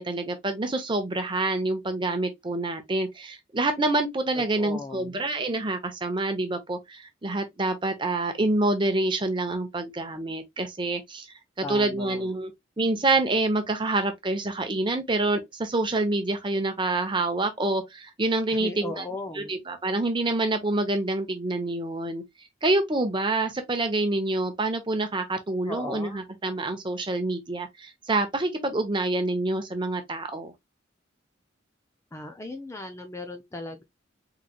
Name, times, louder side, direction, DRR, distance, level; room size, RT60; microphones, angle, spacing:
voice 1, 0.0-11.3 11.6-12.5 12.8-19.0 19.4-22.2 22.6-30.5, right 2 dB, 25° right, 0.7 m, -27 dB
voice 2, 4.5-5.2 11.6-12.3 18.6-19.6 25.7-26.2 32.1-33.8, left 2 dB, 15° left, 0.4 m, -37 dB
3.8 x 3.2 x 2.2 m
head